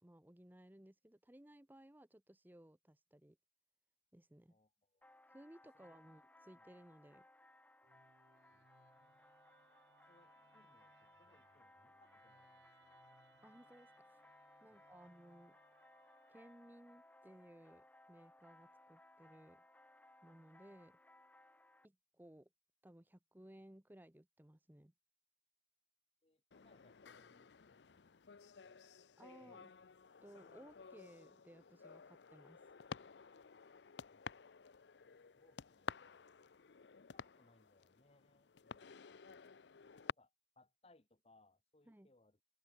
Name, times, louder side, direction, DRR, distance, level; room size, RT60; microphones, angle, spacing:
voice 1, 0.0-3.4 4.1-4.6 5.3-7.2 13.4-13.9 14.6-15.6 16.3-19.6 20.2-21.0 21.8-22.5 22.8-24.9 29.2-29.7 30.2-32.6 41.9-42.1, right 1 dB, 10° right, 0.6 m, -60 dB
voice 2, 4.5-5.1 5.7-6.1 6.5-6.7 8.5-8.7 10.1-13.0 14.7-15.2 26.2-28.8 29.4-29.6 34.1-34.4 35.3-36.4 37.0-39.5 40.0-42.4, left 2 dB, 35° left, 1.0 m, -72 dB
sound 1, 5.0-21.9, left 1 dB, 10° left, 1.2 m, -65 dB
Musical instrument, 7.8-17.0, right 3 dB, 85° right, 2.0 m, -72 dB
sound 2, 26.5-40.1, left 5 dB, 85° left, 0.6 m, -53 dB
open air
head